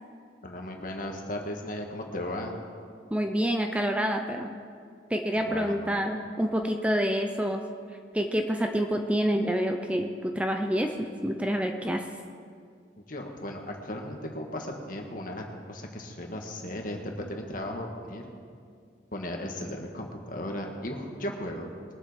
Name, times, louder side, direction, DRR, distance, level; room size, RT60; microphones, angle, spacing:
voice 1, 0.4-2.6 5.3-5.8 13.0-18.2 19.1-21.7, left 1 dB, 50° left, 2 dB, 1.7 m, -36 dB
voice 2, 3.1-4.5 5.1-7.6 8.1-12.0, equal, 5° right, 4 dB, 0.6 m, -27 dB
22.0 x 7.6 x 5.1 m, 2.2 s
head